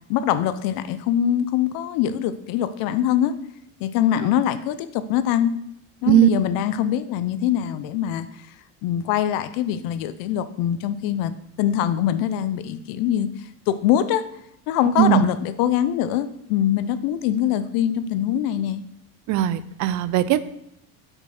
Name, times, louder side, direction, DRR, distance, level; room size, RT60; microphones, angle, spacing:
voice 1, 0.1-3.3 3.8-5.5 6.0-8.3 8.8-11.3 11.6-13.3 13.7-14.3 14.7-18.8, left 10 dB, 70° left, 14 dB, 0.7 m, -23 dB
voice 2, 19.3-20.4, right 12 dB, 55° right, 16 dB, 0.6 m, -18 dB
8.5 x 5.2 x 6.4 m, 0.76 s
cardioid pair, 140°, 35 cm